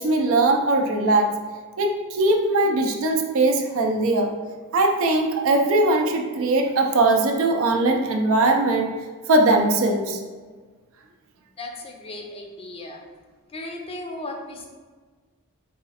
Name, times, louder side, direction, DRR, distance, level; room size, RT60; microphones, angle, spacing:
voice 1, 0.0-1.3 1.8-4.3 4.7-8.9 9.3-10.2, right 2 dB, 65° right, 3 dB, 0.5 m, -20 dB
voice 2, 11.6-13.0 13.5-14.7, left 2 dB, 25° left, 2 dB, 0.5 m, -36 dB
4.1 x 2.3 x 4.1 m, 1.5 s
head